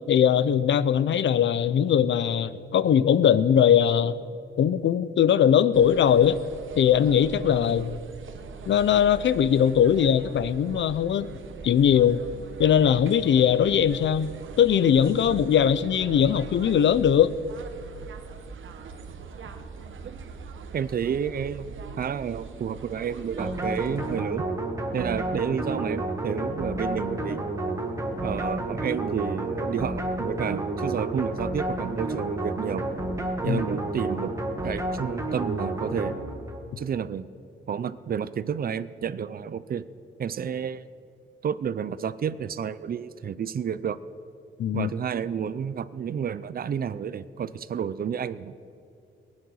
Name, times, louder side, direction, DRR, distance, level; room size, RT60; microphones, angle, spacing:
voice 1, 0.1-4.2 4.6-6.4 6.8-8.0 8.7-11.3 11.6-12.2 12.6-14.3 14.6-17.3 33.5-33.6 44.6-44.9, left 9 dB, 70° left, 16 dB, 0.5 m, -20 dB
sound 1, 5.7-24.2, right 5 dB, 80° right, 1.1 m, -42 dB
voice 2, 20.7-24.5 24.9-27.4 28.2-32.8 33.4-34.3 34.6-36.2 36.8-37.3 37.7-39.8 40.2-40.9 41.4-44.0 44.7-48.5, right 7 dB, 50° right, 16 dB, 0.5 m, -30 dB
sound 2, 23.4-36.7, right 2 dB, 15° right, 1.5 m, -30 dB
19.5 x 9.7 x 6.3 m, 2.6 s
wide cardioid pair, 155°, 20 cm